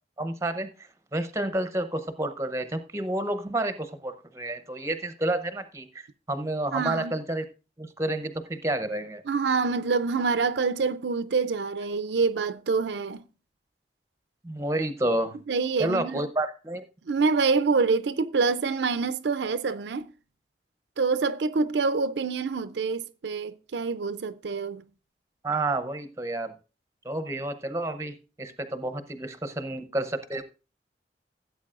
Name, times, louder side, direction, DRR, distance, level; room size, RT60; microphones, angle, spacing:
voice 1, 0.2-0.7 1.1-7.4 7.8-9.2 14.4-15.4 15.8-16.8 25.4-26.5 27.0-30.4, right 1 dB, 15° right, 0.7 m, -30 dB
voice 2, 6.7-7.1 9.3-13.2 15.5-16.3 17.1-20.1 21.0-24.8, right 4 dB, 80° right, 0.5 m, -26 dB
16.0 x 8.1 x 2.5 m
head